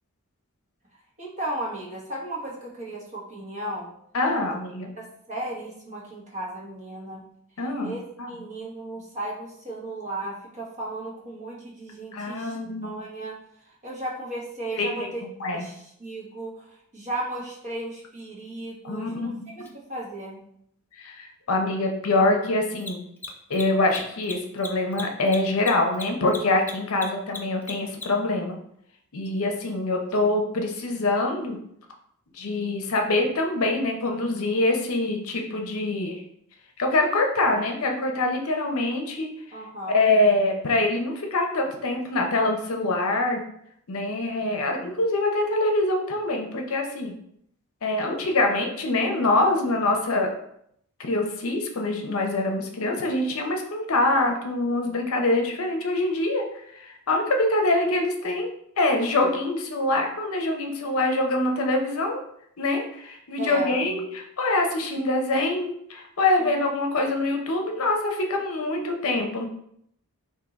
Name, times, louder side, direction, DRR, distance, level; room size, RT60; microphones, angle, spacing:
voice 1, 1.2-3.9 4.4-4.5 5.0-7.3 7.8-8.0 8.3-12.6 12.8-13.4 13.8-20.4 39.5-40.0 63.4-63.8 66.4-66.6, right 1 dB, 35° right, -5 dB, 1.1 m, -35 dB
voice 2, 4.1-5.0 7.6-7.9 8.2-8.3 12.1-12.9 14.8-15.7 18.8-19.5 20.9-23.0 23.5-28.6 29.1-31.6 32.3-36.2 36.8-39.3 39.9-43.4 43.9-47.2 47.8-50.3 51.0-56.4 56.7-58.5 58.8-62.2 62.6-69.5, left 2 dB, 65° left, 2 dB, 0.6 m, -24 dB
Mechanisms, 19.6-19.7 22.7-28.3, left 3 dB, 10° left, 0.4 m, -37 dB
3.7 x 2.6 x 3.9 m, 0.71 s
head